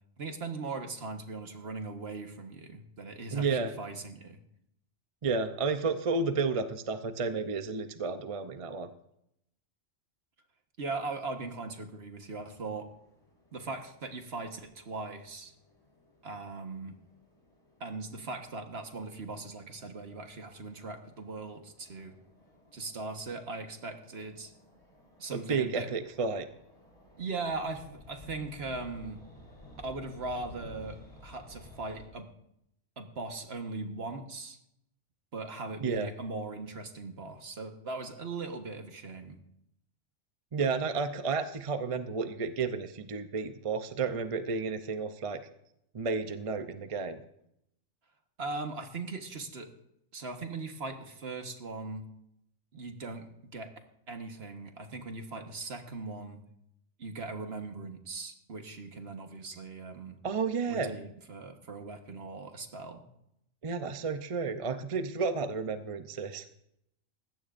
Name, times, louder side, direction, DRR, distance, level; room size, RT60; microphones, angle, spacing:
voice 1, 0.2-4.4 10.8-12.9 13.5-15.5 16.2-17.0 17.8-22.1 22.7-24.5 25.2-25.9 27.2-29.2 29.8-32.3 33.0-34.6 35.3-39.4 48.4-49.7 50.1-52.1 52.7-53.7 54.1-56.4 57.0-60.2 60.7-63.0, right 3 dB, 50° right, 5 dB, 1.5 m, -39 dB
voice 2, 3.3-3.7 5.2-8.9 25.3-26.5 35.8-36.1 40.5-45.5 45.9-47.2 60.2-60.9 63.6-66.5, right 4 dB, 35° right, 9 dB, 0.5 m, -31 dB
sound 1, 12.5-32.1, left 1 dB, 25° left, 4.3 m, -56 dB
19.5 x 16.0 x 2.6 m, 0.78 s
omnidirectional pair, 1.4 m